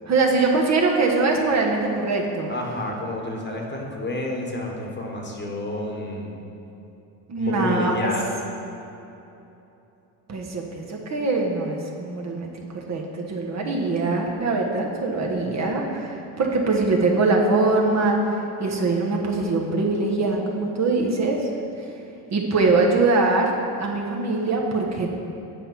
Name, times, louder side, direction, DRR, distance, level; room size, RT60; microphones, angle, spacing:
voice 1, 0.1-2.5 7.3-8.1 10.3-21.5 21.8-21.9 22.3-23.5 23.8-25.1, right 3 dB, 40° right, 0 dB, 1.2 m, -22 dB
voice 2, 2.5-6.4 7.4-8.3, left 1 dB, 25° left, 0 dB, 1.4 m, -30 dB
8.4 x 4.4 x 5.6 m, 3.0 s
supercardioid pair, 75°, 42 cm